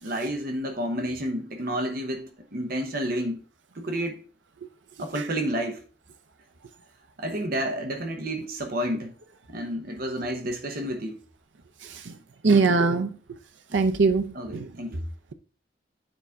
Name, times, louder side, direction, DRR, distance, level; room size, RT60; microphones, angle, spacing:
voice 1, 0.0-3.4 3.7-4.2 5.0-5.8 7.2-9.1 9.5-11.2 14.3-15.1, right 1 dB, 50° right, 1.0 m, -30 dB
voice 2, 12.4-13.1 13.7-14.3 14.5-14.7, right 4 dB, 80° right, 0.6 m, -21 dB
8.9 x 4.2 x 3.5 m
head